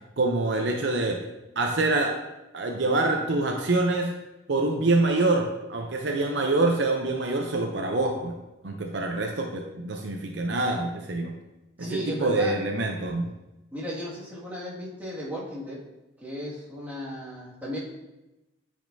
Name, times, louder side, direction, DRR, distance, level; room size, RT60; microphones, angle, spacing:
voice 1, 0.2-1.2 1.6-2.1 2.5-4.1 4.5-8.3 8.6-11.3 11.8-13.3, right 2 dB, 65° right, 3 dB, 0.6 m, -25 dB
voice 2, 11.8-12.5 13.7-15.8 16.2-17.8, equal, 10° right, -8 dB, 2.0 m, -35 dB
9.2 x 5.1 x 2.7 m, 0.97 s
head